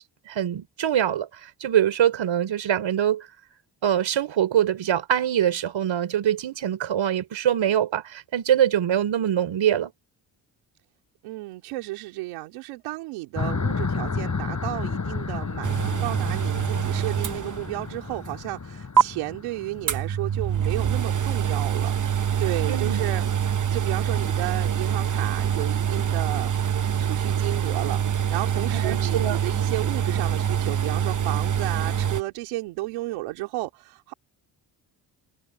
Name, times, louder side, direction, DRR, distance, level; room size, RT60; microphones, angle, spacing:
voice 1, 0.3-1.3 1.6-3.2 3.8-9.9 22.7-23.0 28.7-29.4, right 10 dB, 65° right, 4.2 m, -23 dB
voice 2, 11.2-23.2 23.7-26.5 27.0-34.1, right 19 dB, 85° right, 2.7 m, -33 dB
sound 1, 13.3-20.8, left 4 dB, 35° left, 6.2 m, -32 dB
sound 2, 15.6-17.9 18.3-18.4 19.0-19.1 19.9-32.2, right 8 dB, 40° right, 1.2 m, -25 dB
hypercardioid pair, 50°, 48 cm